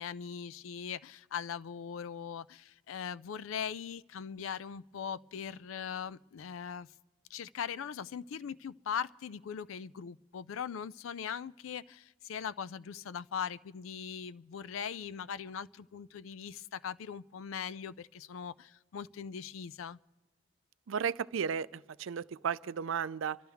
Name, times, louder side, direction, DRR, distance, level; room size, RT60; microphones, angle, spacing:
voice 1, 0.0-6.9 7.3-20.0, left 7 dB, 80° left, 0.4 m, -40 dB
voice 2, 20.9-23.4, right 7 dB, 75° right, 0.4 m, -34 dB
27.5 x 12.5 x 3.5 m
head